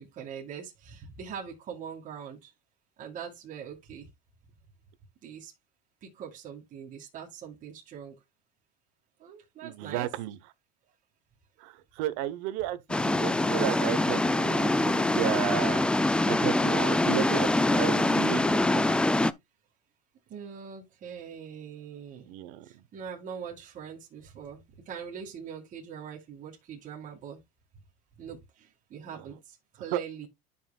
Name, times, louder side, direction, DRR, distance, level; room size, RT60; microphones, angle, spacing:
voice 1, 0.0-2.5 3.0-4.1 5.2-5.5 6.0-8.2 9.2-10.1 20.3-22.3 22.6-27.4 28.2-30.3, right 7 dB, 40° right, 2.2 m, -42 dB
voice 2, 9.6-10.4 11.6-18.9 22.3-22.8 29.1-29.3 29.9-30.0, right 14 dB, 70° right, 1.0 m, -33 dB
sound 1, 12.9-19.3, left 2 dB, 5° left, 0.4 m, -24 dB
12.0 x 5.6 x 2.3 m
supercardioid pair, 125°, 20 cm